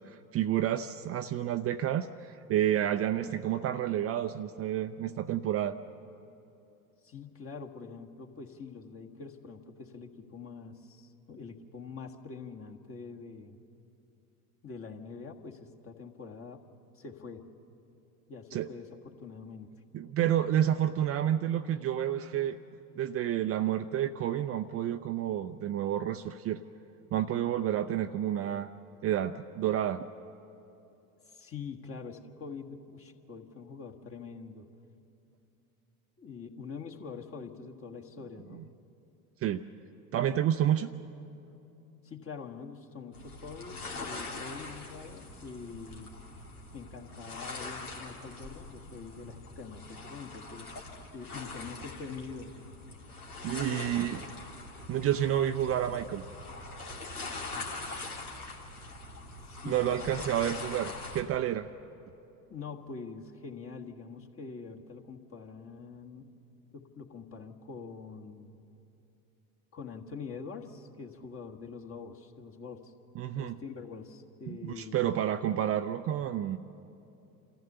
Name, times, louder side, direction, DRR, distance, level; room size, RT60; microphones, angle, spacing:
voice 1, 0.1-5.8 18.5-18.7 19.9-22.6 23.0-26.6 27.1-28.7 29.0-30.1 38.6-38.7 39.4-39.6 40.1-40.9 53.4-54.2 54.9-56.2 59.7-61.7 73.2-73.6 74.5-76.6, right 11 dB, 35° right, 9 dB, 0.5 m, -30 dB
voice 2, 7.0-13.6 14.6-16.6 16.9-17.4 18.3-19.7 31.3-34.7 36.2-38.7 42.0-46.1 46.7-52.6 53.7-54.1 59.5-60.2 62.5-66.3 66.7-68.6 69.7-72.9 73.3-75.2, left 5 dB, 30° left, 2 dB, 1.6 m, -45 dB
sound 1, 43.1-61.2, left 3 dB, 90° left, 2.1 m, -43 dB
27.5 x 14.5 x 6.8 m, 2.8 s
hypercardioid pair, 75°, 43 cm